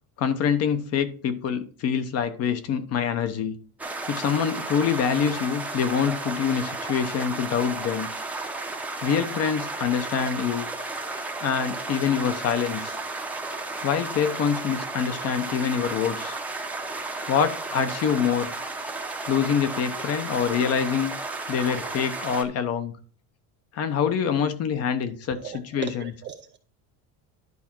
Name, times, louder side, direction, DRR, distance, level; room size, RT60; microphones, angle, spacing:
voice 1, 0.2-3.5 4.1-8.1 9.0-10.7 11.4-13.0 13.8-16.4 17.3-18.5 19.3-21.1 21.5-22.9 23.7-26.1, left 7 dB, 35° left, 0.9 m, -25 dB
sound 1, 3.8-22.4, right 3 dB, 5° right, 0.8 m, -33 dB
voice 2, 25.4-26.6, right 9 dB, 25° right, 0.4 m, -38 dB
11.0 x 5.0 x 4.4 m
cardioid pair, 170°, 44 cm